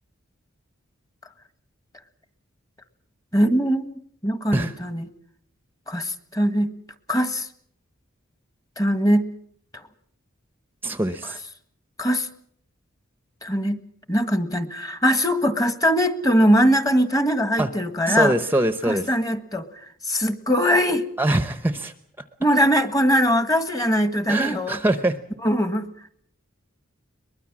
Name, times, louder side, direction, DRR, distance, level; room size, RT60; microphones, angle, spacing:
voice 1, 3.3-5.1 5.9-6.7 7.1-7.5 8.8-9.3 12.0-12.3 13.4-13.8 14.1-18.3 18.9-19.7 20.0-21.1 22.4-24.8 25.4-25.9, equal, 15° left, 11 dB, 1.6 m, -21 dB
voice 2, 10.8-11.4 17.6-17.7 18.1-19.1 21.2-21.9 24.3-25.2, right 1 dB, 10° right, 11 dB, 0.9 m, -23 dB
23.0 x 21.0 x 7.4 m, 0.65 s
head